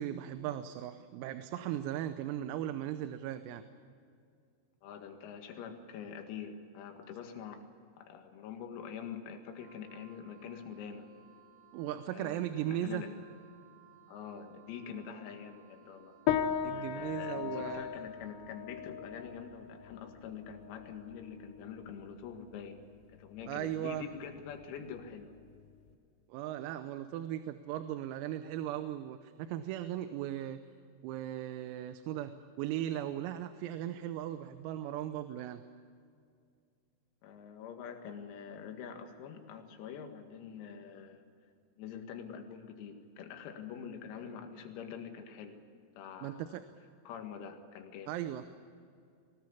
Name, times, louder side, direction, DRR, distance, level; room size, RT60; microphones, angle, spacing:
voice 1, 0.0-3.6 11.7-13.0 16.6-17.9 23.5-24.0 26.3-30.6 31.0-35.6 46.2-46.6 48.1-48.4, right 12 dB, 90° right, 10 dB, 3.6 m, -37 dB
voice 2, 4.8-7.7 8.0-11.1 12.1-13.2 14.1-16.2 16.7-22.8 23.1-25.3 37.2-41.2 41.8-45.6 46.0-46.6 47.1-48.2, left 7 dB, 90° left, 5 dB, 4.7 m, -45 dB
Wind instrument woodwind instrument, 9.5-17.7, right 7 dB, 50° right, 6.3 m, -61 dB
sound 1, 16.3-25.9, left 9 dB, 75° left, 2.8 m, -39 dB
22.5 x 19.0 x 8.6 m, 2.3 s
omnidirectional pair, 6.0 m